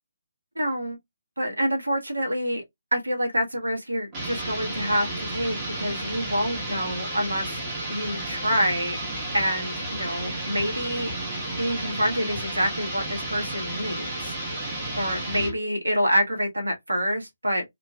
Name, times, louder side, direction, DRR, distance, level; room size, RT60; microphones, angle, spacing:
voice 1, 0.5-1.0 1.4-2.6 2.9-7.6 7.9-9.0 9.3-11.1 11.6-14.3 15.0-17.6, equal, 75° right, 1.2 m, -27 dB
sound 1, 4.1-15.6, right 1 dB, 20° right, 1.1 m, -32 dB
2.8 x 2.6 x 2.2 m
figure-of-eight pair, 140°, 0 cm